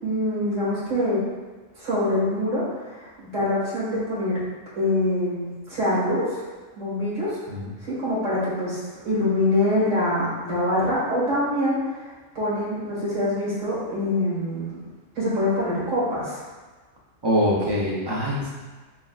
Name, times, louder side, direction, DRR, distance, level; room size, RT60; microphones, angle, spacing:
voice 1, 0.0-1.2 1.7-4.4 4.8-6.4 6.8-7.4 7.8-14.8 15.2-16.4, left 1 dB, 75° right, -9 dB, 2.0 m, -25 dB
voice 2, 17.2-18.5, equal, 30° right, -5 dB, 0.5 m, -23 dB
6.9 x 2.3 x 2.4 m, 1.3 s
omnidirectional pair, 1.3 m